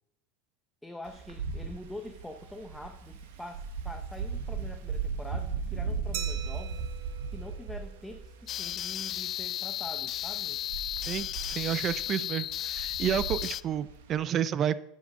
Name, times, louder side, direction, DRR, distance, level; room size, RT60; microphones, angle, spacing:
voice 1, 0.8-6.8 7.3-10.6, left 1 dB, 5° left, 5 dB, 0.9 m, -44 dB
Wind, 1.0-14.2, right 5 dB, 80° right, 1.5 m, -37 dB
Glass, 6.1-8.6, right 11 dB, 60° right, 1.0 m, -43 dB
sound 1, 8.5-13.6, left 12 dB, 45° left, 0.3 m, -34 dB
voice 2, 11.1-14.8, right 9 dB, 35° right, 17 dB, 0.6 m, -30 dB
10.5 x 7.5 x 5.4 m, 0.83 s
supercardioid pair, 115°, 0 cm